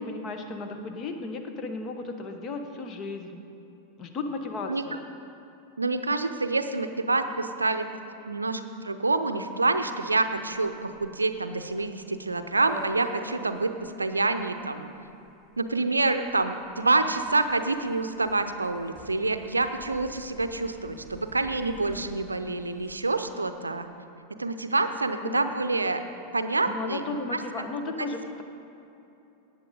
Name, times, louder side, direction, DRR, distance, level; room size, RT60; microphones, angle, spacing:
voice 1, 0.0-3.4 4.0-5.0 25.2-25.4 26.7-28.4, left 3 dB, 30° left, 6 dB, 1.1 m, -34 dB
voice 2, 5.8-7.9 8.3-13.7 14.0-14.9 15.6-23.9 24.4-26.0 26.3-27.4 27.8-28.1, right 3 dB, 80° right, 9 dB, 0.6 m, -27 dB
sound 1, 10.3-23.0, right 2 dB, 5° right, 2.0 m, -48 dB
17.5 x 8.8 x 3.8 m, 2.9 s
figure-of-eight pair, 90°, 0 cm